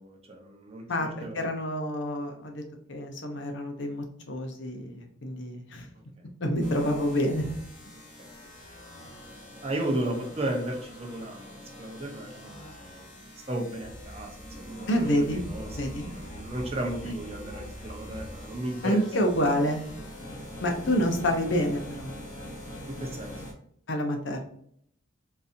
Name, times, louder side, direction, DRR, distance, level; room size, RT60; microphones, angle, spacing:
voice 1, 0.0-1.4 8.2-8.3 9.6-19.3 20.9-21.0 22.8-23.3, right 1 dB, 30° right, 0 dB, 0.7 m, -35 dB
voice 2, 1.3-2.6 2.9-5.9 6.4-7.4 14.9-15.4 15.8-16.1 18.8-19.8 20.6-22.1 23.9-24.4, equal, 60° left, 4 dB, 0.7 m, -28 dB
sound 1, 6.6-23.5, equal, 35° left, 0.9 m, -43 dB
3.9 x 2.7 x 2.6 m, 0.66 s
head